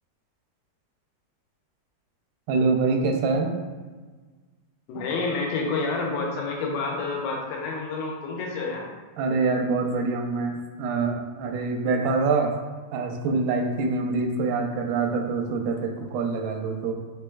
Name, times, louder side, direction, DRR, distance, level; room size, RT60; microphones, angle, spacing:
voice 1, 2.5-3.6 9.2-12.5 12.9-16.9, right 4 dB, 85° right, 3 dB, 2.4 m, -25 dB
voice 2, 4.9-8.9, left 3 dB, 90° left, -1 dB, 2.5 m, -29 dB
6.0 x 3.2 x 2.3 m, 1.4 s
omnidirectional pair, 4.2 m